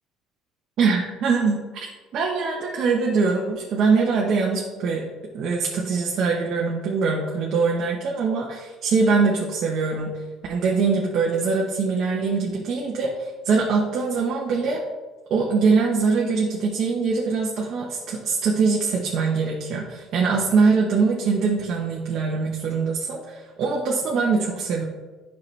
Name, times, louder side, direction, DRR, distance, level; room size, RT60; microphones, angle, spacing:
voice 1, 0.8-1.9 2.1-5.1 5.3-10.2 10.5-14.8 15.3-24.8, right 4 dB, 50° right, -2 dB, 1.0 m, -23 dB
9.1 x 5.8 x 3.3 m, 1.3 s
cardioid pair, 145°, 0 cm